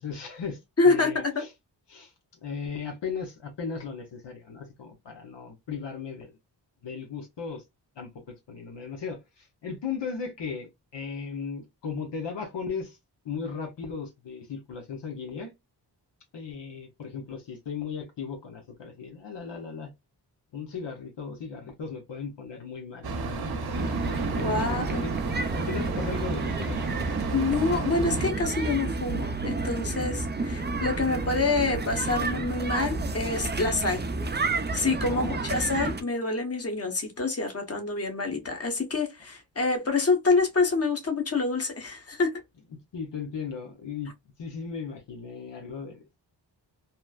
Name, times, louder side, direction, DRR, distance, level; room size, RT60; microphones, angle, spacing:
voice 1, 0.0-0.6 0.8-1.5 1.9-2.1 2.4-6.3 6.8-7.6 8.0-13.0 13.2-15.5 16.3-19.9 20.5-23.1 24.3-25.2 25.5-26.8 35.1-35.4 42.9-44.1 44.4-46.2, left 5 dB, 75° left, 0.9 m, -36 dB
voice 2, 0.8-1.4 24.3-25.0 27.3-34.0 34.7-42.4, left 3 dB, 35° left, 1.1 m, -27 dB
sound 1, 23.0-28.3, right 3 dB, 60° right, 0.8 m, -32 dB
sound 2, 23.7-36.0, right 3 dB, 25° right, 0.5 m, -31 dB
3.0 x 2.1 x 2.3 m
cardioid pair, 55°, 43 cm